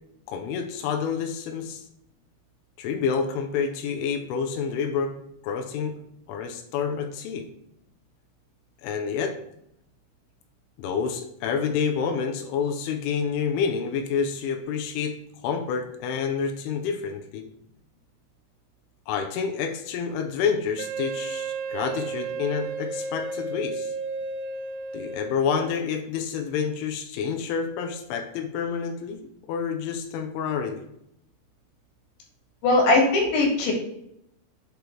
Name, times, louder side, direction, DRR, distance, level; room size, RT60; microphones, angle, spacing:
voice 1, 0.3-1.8 2.8-5.1 5.4-5.9 6.3-7.4 8.8-9.4 10.8-15.1 15.4-17.4 19.1-23.9 24.9-29.2 29.5-30.8, left 6 dB, 85° left, 5 dB, 3.0 m, -28 dB
Wind instrument woodwind instrument, 20.8-25.9, right 3 dB, 85° right, 2.6 m, -33 dB
voice 2, 32.6-33.7, left 2 dB, 70° left, -1 dB, 4.0 m, -20 dB
7.9 x 3.4 x 4.4 m, 0.77 s
omnidirectional pair, 5.6 m